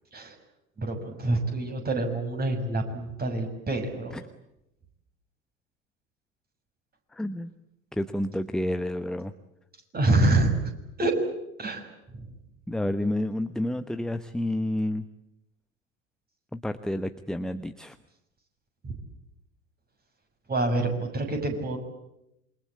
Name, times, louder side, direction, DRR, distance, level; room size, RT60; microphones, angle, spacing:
voice 1, 0.8-4.2 9.9-10.7 11.0-11.1 11.6-11.8 12.1-12.3 18.8-19.0 20.5-21.8, right 2 dB, 25° right, 5 dB, 6.6 m, -26 dB
voice 2, 7.1-7.5 7.9-9.3 12.7-15.1 16.5-18.0, left 1 dB, ahead, 11 dB, 1.0 m, -30 dB
28.0 x 24.0 x 8.7 m, 0.86 s
figure-of-eight pair, 75°, 40 cm